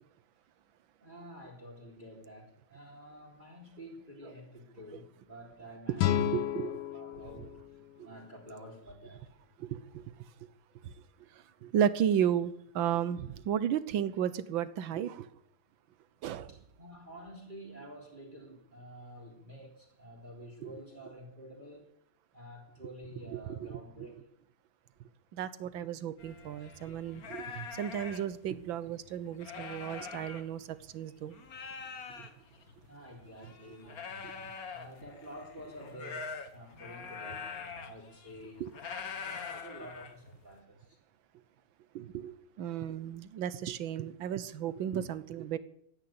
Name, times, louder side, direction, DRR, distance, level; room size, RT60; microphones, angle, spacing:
voice 1, 1.0-7.5 8.0-9.2 16.5-21.9 22.3-24.2 32.9-38.6 39.2-41.0, equal, 20° right, -2 dB, 3.5 m, -49 dB
voice 2, 5.9-6.7 9.6-10.0 10.8-10.9 11.6-15.3 16.2-16.5 20.6-20.8 23.3-24.1 25.3-31.3 32.2-32.3 38.6-38.7 41.9-45.6, right 9 dB, 70° right, 15 dB, 1.6 m, -34 dB
sound 1, 6.0-9.0, left 12 dB, 85° left, 1.7 m, -33 dB
sound 2, 26.2-31.0 31.3-40.5, left 5 dB, 45° left, 1.8 m, -44 dB
15.0 x 10.5 x 8.6 m, 0.71 s
omnidirectional pair, 2.4 m